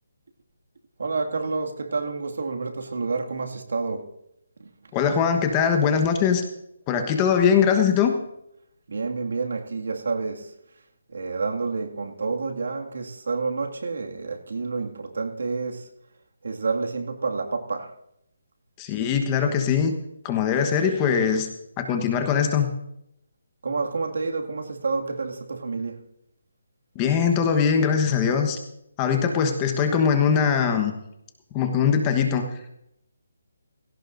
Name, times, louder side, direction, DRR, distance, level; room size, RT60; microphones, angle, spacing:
voice 1, 1.0-4.1 4.6-4.7 8.9-10.5 11.1-15.9 16.4-17.9 23.6-26.1, right 4 dB, 70° right, 2.1 m, -29 dB
voice 2, 4.9-6.4 6.9-8.1 18.8-20.0 20.2-21.5 21.8-22.7 26.9-28.6 29.0-30.9 31.5-32.5, left 7 dB, 15° left, 1.2 m, -21 dB
18.0 x 17.0 x 2.6 m
hypercardioid pair, 170°, 0 cm